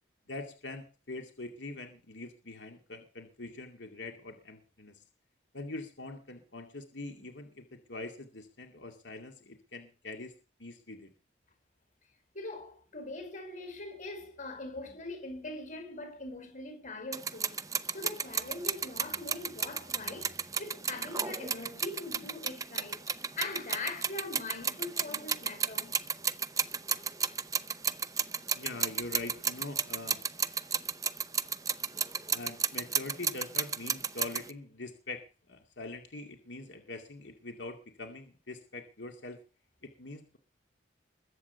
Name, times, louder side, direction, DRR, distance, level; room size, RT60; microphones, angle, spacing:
voice 1, 0.3-5.0 5.5-11.1 28.5-30.2 32.3-39.4 39.8-40.4, left 2 dB, 80° left, 2.4 m, -43 dB
voice 2, 12.3-17.5 17.9-23.0 23.4-26.0, left 2 dB, 45° left, 5.4 m, -42 dB
sound 1, 17.1-34.5, right 6 dB, 20° right, 0.7 m, -33 dB
21.5 x 8.7 x 7.0 m
head